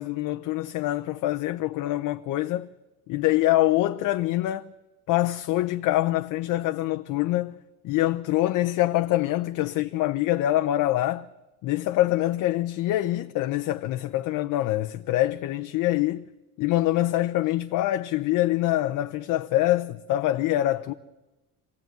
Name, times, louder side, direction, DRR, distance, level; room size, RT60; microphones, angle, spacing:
voice 1, 0.0-2.7 3.1-4.7 5.1-7.6 7.8-11.3 11.6-16.2 16.6-20.9, left 15 dB, 70° left, 0.8 m, -25 dB
24.5 x 17.0 x 9.3 m
cardioid pair, 135°, 33 cm